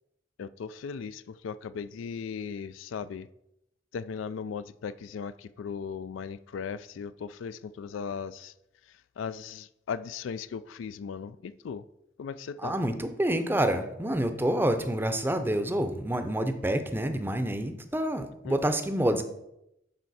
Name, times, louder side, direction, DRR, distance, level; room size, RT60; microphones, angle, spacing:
voice 1, 0.4-3.3 3.9-8.5 9.2-11.8 12.2-12.8 18.4-18.6, left 6 dB, 75° left, 0.3 m, -37 dB
voice 2, 12.6-19.2, right 1 dB, 10° right, 0.6 m, -28 dB
11.0 x 4.3 x 4.1 m
head